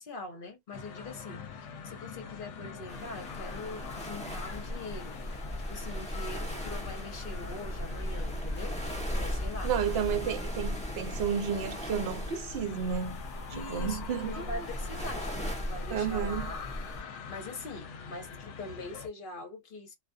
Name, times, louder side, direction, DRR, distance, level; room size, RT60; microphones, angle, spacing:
voice 1, 0.0-5.2 5.7-9.7 13.5-16.7 17.3-19.9, left 2 dB, 50° left, 0.9 m, -43 dB
sound 1, 0.7-19.1, left 6 dB, 70° left, 0.9 m, -44 dB
sound 2, 2.9-17.0, equal, 5° left, 0.6 m, -37 dB
voice 2, 9.6-13.2 13.6-14.6 15.9-16.5, right 8 dB, 60° right, 0.8 m, -32 dB
2.4 x 2.3 x 2.2 m
omnidirectional pair, 1.3 m